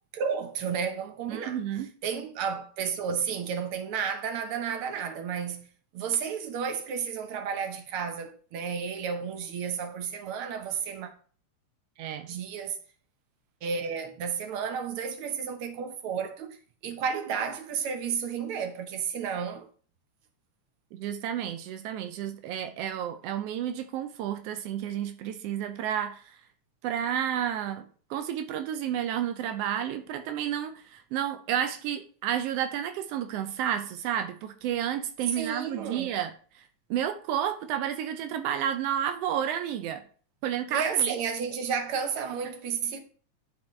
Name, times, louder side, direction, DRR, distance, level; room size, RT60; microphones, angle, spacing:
voice 1, 0.1-1.6 2.0-5.7 5.9-11.1 12.3-12.8 13.6-16.6 16.8-19.7 35.3-36.1 40.7-43.0, right 7 dB, 65° right, 1.5 m, -32 dB
voice 2, 1.3-1.9 12.0-12.3 20.9-26.4 26.8-40.0 40.4-41.2, right 10 dB, 90° right, 1.4 m, -31 dB
11.5 x 4.4 x 3.2 m
omnidirectional pair, 3.4 m